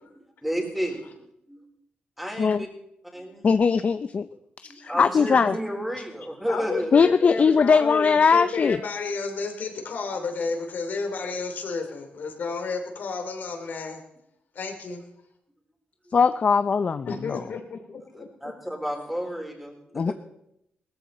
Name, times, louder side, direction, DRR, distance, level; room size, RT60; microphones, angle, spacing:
voice 1, 0.0-1.0 1.5-1.6 2.2-2.7 3.1-3.4 4.6-7.0 18.1-20.1, equal, 5° right, 1 dB, 4.2 m, -32 dB
voice 2, 3.4-4.3 4.8-5.5 6.9-8.8 16.1-17.4 19.9-20.1, left 5 dB, 45° left, 11 dB, 0.5 m, -20 dB
voice 3, 6.5-14.0 14.5-15.1 17.1-18.3, left 4 dB, 65° left, 4 dB, 2.9 m, -31 dB
18.0 x 14.0 x 4.2 m, 0.78 s
cardioid pair, 95°, 3 cm